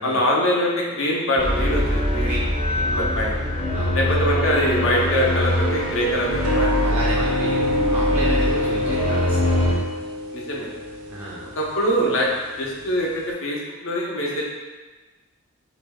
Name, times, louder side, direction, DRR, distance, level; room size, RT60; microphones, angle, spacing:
voice 1, 0.0-2.3 2.9-3.4 3.9-6.9 10.3-10.7 11.6-12.3 12.6-14.4, equal, 60° left, -2 dB, 0.7 m, -23 dB
sound 1, 1.4-9.7, left 1 dB, 25° left, 0.7 m, -23 dB
voice 2, 2.7-3.1 3.7-4.1 6.8-9.5 11.1-11.5, right 1 dB, 10° right, -8 dB, 0.3 m, -32 dB
sound 2, 6.4-13.3, left 1 dB, 90° right, 0.6 m, -27 dB
3.0 x 2.7 x 3.4 m, 1.3 s
head